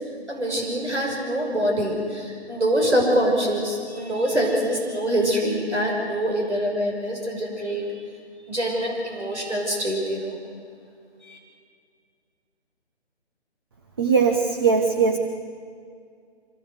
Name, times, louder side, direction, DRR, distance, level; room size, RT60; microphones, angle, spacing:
voice 1, 0.3-7.9 8.5-10.4 11.2-11.4, equal, 80° right, 0 dB, 5.8 m, -24 dB
voice 2, 14.0-15.2, right 5 dB, 20° right, 4 dB, 0.8 m, -20 dB
24.5 x 17.0 x 7.9 m, 2.3 s
figure-of-eight pair, 150°, 33 cm